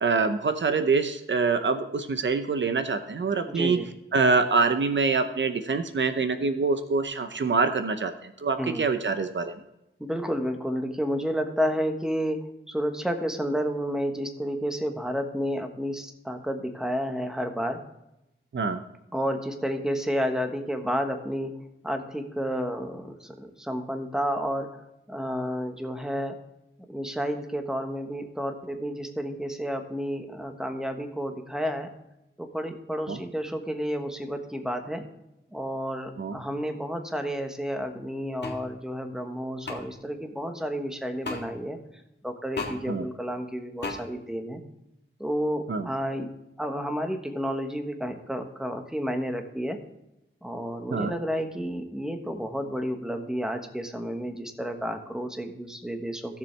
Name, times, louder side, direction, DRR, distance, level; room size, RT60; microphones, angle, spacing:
voice 1, 0.0-3.8 4.1-9.5 18.5-18.8 33.1-33.2 36.2-36.4 42.9-43.1 45.7-45.9 50.9-51.1, right 4 dB, 60° right, 8 dB, 0.8 m, -25 dB
voice 2, 3.5-3.9 8.6-8.8 10.0-12.4 12.7-17.8 19.1-21.5 21.8-24.7 25.1-26.3 26.9-31.9 32.4-35.0 35.5-41.8 42.2-44.6 45.2-46.3 46.6-49.8 50.4-56.4, equal, 5° right, 5 dB, 1.2 m, -31 dB
sound 1, 38.4-38.6 39.7-39.8 41.2-41.4 42.6-42.8 43.8-44.0, left 3 dB, 55° left, 1.8 m, -32 dB
16.0 x 7.0 x 3.3 m, 0.90 s
wide cardioid pair, 125°, 21 cm